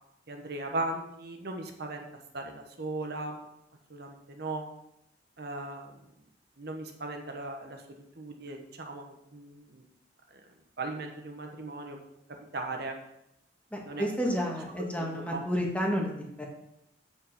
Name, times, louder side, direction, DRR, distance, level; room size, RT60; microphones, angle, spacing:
voice 1, 0.3-2.0 2.3-3.4 3.9-4.6 5.4-5.9 6.6-7.8 8.2-9.8 10.8-12.0 12.5-13.0 13.9-14.0 15.0-15.4, right 2 dB, 60° right, 3 dB, 1.2 m, -37 dB
voice 2, 13.7-16.5, equal, 5° left, 0 dB, 1.6 m, -31 dB
7.7 x 7.1 x 5.9 m, 0.82 s
head